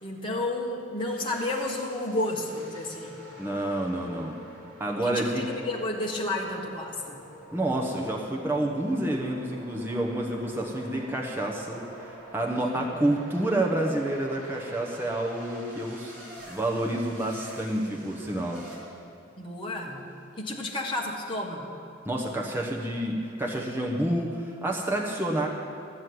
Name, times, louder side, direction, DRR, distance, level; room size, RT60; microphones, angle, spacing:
voice 1, 0.0-3.2 5.0-7.2 12.6-13.0 19.4-20.0 20.4-21.6, left 1 dB, 25° left, -2 dB, 1.5 m, -31 dB
sound 1, 1.1-18.8, equal, 70° right, 3.9 m, -47 dB
voice 2, 3.4-4.3 4.8-5.4 7.5-18.6 22.0-25.5, right 1 dB, 10° right, -1 dB, 1.0 m, -29 dB
14.0 x 6.4 x 9.4 m, 2.4 s
head